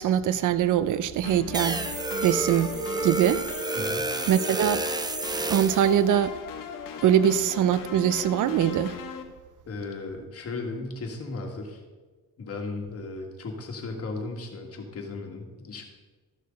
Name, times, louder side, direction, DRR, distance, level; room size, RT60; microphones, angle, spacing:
voice 1, 0.0-1.9 2.2-2.7 3.0-3.4 4.3-4.8 5.5-6.4 7.0-9.0, right 10 dB, 70° right, 0.6 m, -22 dB
sound 1, 1.2-9.2, left 6 dB, 85° left, 1.2 m, -38 dB
sound 2, 1.5-5.9, right 3 dB, 15° right, 0.5 m, -30 dB
voice 2, 3.8-4.1 9.7-11.8 12.4-15.8, left 3 dB, 45° left, 1.9 m, -36 dB
13.5 x 6.5 x 5.2 m
cardioid pair, 135°, 32 cm